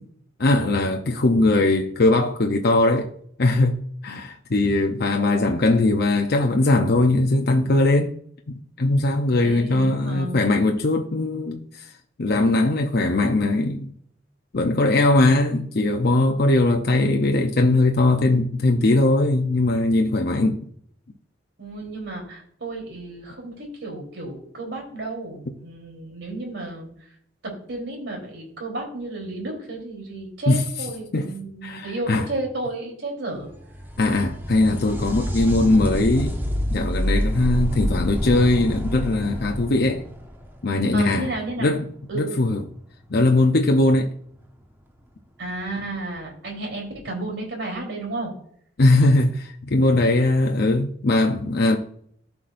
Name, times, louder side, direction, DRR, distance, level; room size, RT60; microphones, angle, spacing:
voice 1, 0.4-3.1 3.4-8.1 8.5-11.9 12.2-13.9 14.5-20.6 30.5-30.7 31.1-31.3 31.6-32.3 34.0-36.4 36.7-40.0 40.6-41.3 41.6-41.8 42.1-42.6 43.1-44.1 48.8-51.8, left 2 dB, 55° left, 0.7 m, -20 dB
voice 2, 9.4-10.4 21.6-26.9 27.4-33.5 40.9-41.8 42.1-42.4 45.4-48.3, right 2 dB, 70° right, 3.6 m, -32 dB
sound 1, 33.5-41.1 44.5-44.6 45.6-45.7, equal, 10° right, 1.3 m, -27 dB
14.0 x 5.9 x 2.6 m
head